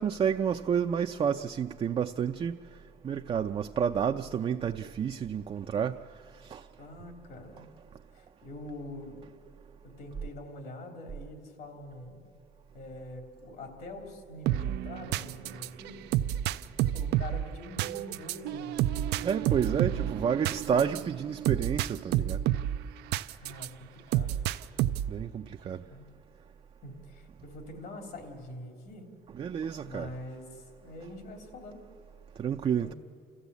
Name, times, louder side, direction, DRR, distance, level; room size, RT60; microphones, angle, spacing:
voice 1, 0.0-2.6 3.0-6.0 6.5-6.6 19.2-22.4 25.1-25.8 29.3-30.1 32.4-32.9, right 7 dB, 35° right, 0.5 m, -30 dB
voice 2, 6.8-7.7 8.1-9.2 9.8-12.3 12.7-16.0 16.8-19.3 19.6-20.2 23.3-24.3 25.6-26.1 26.8-29.1 29.8-31.8 32.8-32.9, left 1 dB, 70° left, 3.4 m, -45 dB
sound 1, 14.5-23.7 24.1-25.2, right 13 dB, 85° right, 0.5 m, -30 dB
28.0 x 15.0 x 8.3 m
cardioid pair, 110°, 17 cm